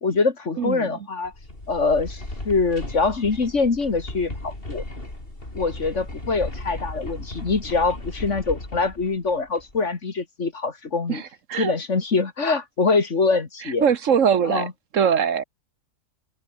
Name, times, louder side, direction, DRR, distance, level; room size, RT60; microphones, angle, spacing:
voice 1, 0.0-1.3 1.7-4.8 5.5-11.2 11.6-13.8 14.5-14.7, left 4 dB, 55° left, 2.3 m, -24 dB
voice 2, 0.6-0.9 11.1-11.7 13.6-14.7 14.9-15.4, right 7 dB, 60° right, 1.4 m, -22 dB
sound 1, 1.2-9.8, left 1 dB, 40° left, 5.5 m, -36 dB
omnidirectional pair, 1.6 m